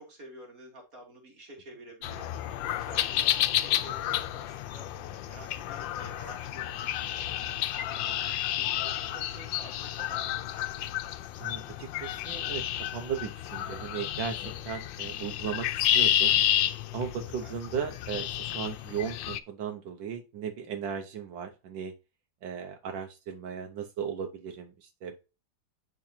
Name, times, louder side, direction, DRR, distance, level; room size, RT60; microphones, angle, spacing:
voice 1, 0.0-4.9 5.3-11.0 17.2-17.6, right 2 dB, 50° right, -1 dB, 2.9 m, -50 dB
sound 1, 2.0-19.4, left 12 dB, 85° left, 1.3 m, -31 dB
voice 2, 11.4-16.4 16.9-21.9 22.4-25.2, right 7 dB, 80° right, 5 dB, 1.6 m, -36 dB
11.0 x 3.9 x 2.7 m, 0.29 s
omnidirectional pair, 2.0 m